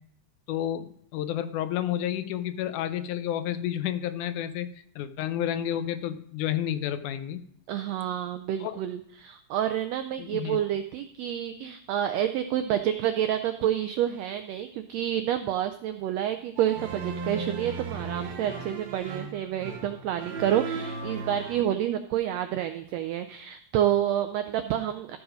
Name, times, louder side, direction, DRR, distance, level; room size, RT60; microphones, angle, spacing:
voice 1, 0.5-4.7 5.0-7.4 8.6-8.7 10.2-10.6, left 11 dB, 90° left, 11 dB, 2.2 m, -30 dB
voice 2, 7.7-25.2, right 11 dB, 90° right, 8 dB, 1.4 m, -29 dB
sound 1, 16.6-21.6, right 4 dB, 55° right, 1.3 m, -36 dB
13.5 x 4.8 x 5.0 m, 0.64 s
omnidirectional pair, 3.5 m